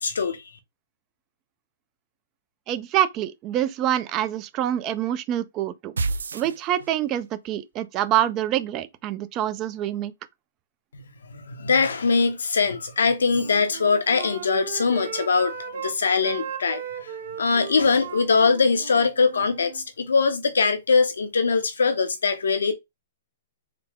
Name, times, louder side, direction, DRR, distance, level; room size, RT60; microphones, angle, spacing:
voice 1, 0.0-0.4 11.3-16.8 17.4-22.7, left 4 dB, 90° left, 0.9 m, -22 dB
voice 2, 2.7-5.9 6.3-10.1, right 11 dB, 30° right, 0.5 m, -26 dB
sound 1, 6.0-7.2, right 3 dB, 90° right, 0.4 m, -29 dB
Wind instrument woodwind instrument, 13.2-15.9 16.2-19.8, right 7 dB, 60° right, 0.9 m, -37 dB
3.8 x 2.1 x 3.6 m
hypercardioid pair, 140°, 0 cm